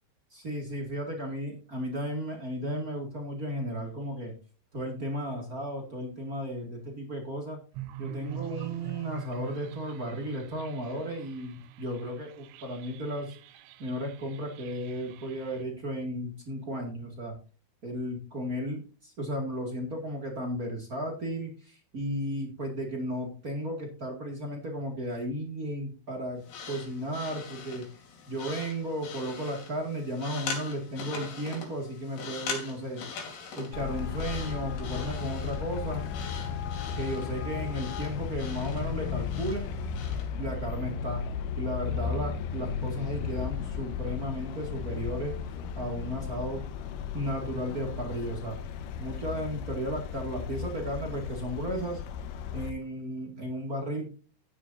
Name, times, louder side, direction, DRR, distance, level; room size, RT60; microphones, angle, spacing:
voice 1, 0.3-4.3 4.7-7.6 8.0-13.3 13.8-17.4 17.8-26.4 26.7-27.8 28.3-33.0 33.5-36.0 36.9-39.7 40.4-41.2 41.6-45.3 45.7-46.6 47.1-48.6 49.0-52.0 52.5-54.1, equal, 50° right, 1 dB, 1.0 m, -34 dB
sound 1, 7.7-15.6, right 13 dB, 80° right, 3.1 m, -45 dB
sound 2, 26.4-40.3, left 5 dB, 60° left, 4.5 m, -42 dB
Traffic noise roadway noise, 33.7-52.7, left 7 dB, 90° left, 3.7 m, -35 dB
14.0 x 10.0 x 2.7 m, 0.36 s
omnidirectional pair, 5.6 m